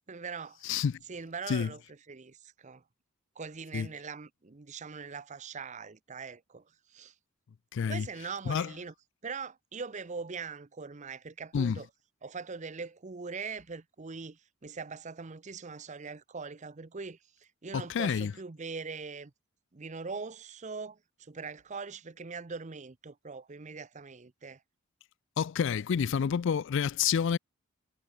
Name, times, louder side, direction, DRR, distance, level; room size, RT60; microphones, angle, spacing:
voice 1, 0.1-0.6 1.1-2.8 3.4-6.6 6.9-7.1 7.9-8.9 9.2-11.9 12.2-19.3 19.7-24.6, right 5 dB, 35° right, 0.7 m, -42 dB
voice 2, 0.6-1.0 1.5-1.7 3.7-3.9 7.7-8.1 8.5-8.7 11.5-11.8 17.7-18.3 25.4-27.4, left 7 dB, 60° left, 0.4 m, -28 dB
head